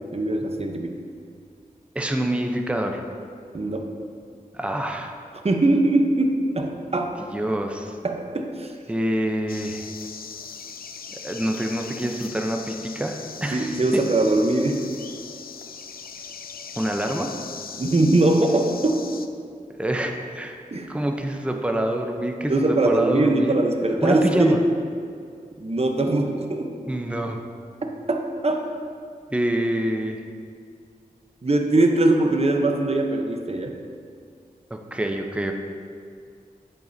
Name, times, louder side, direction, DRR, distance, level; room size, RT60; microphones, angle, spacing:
voice 1, 0.1-0.9 3.5-3.9 5.4-7.2 8.0-8.7 13.5-14.8 17.8-19.0 20.7-20.9 22.5-24.5 25.6-26.7 27.8-28.7 31.4-33.7, right 2 dB, 45° right, 3 dB, 0.9 m, -21 dB
voice 2, 1.9-3.0 4.5-5.1 7.2-8.0 8.9-9.9 11.2-14.0 16.8-17.3 19.8-23.6 24.0-24.6 26.9-27.4 29.3-30.2 34.7-35.5, right 1 dB, 10° right, 3 dB, 0.7 m, -26 dB
sound 1, 9.5-19.3, left 6 dB, 80° left, 0.4 m, -39 dB
9.4 x 7.7 x 2.7 m, 2.2 s
cardioid pair, 50°, 15 cm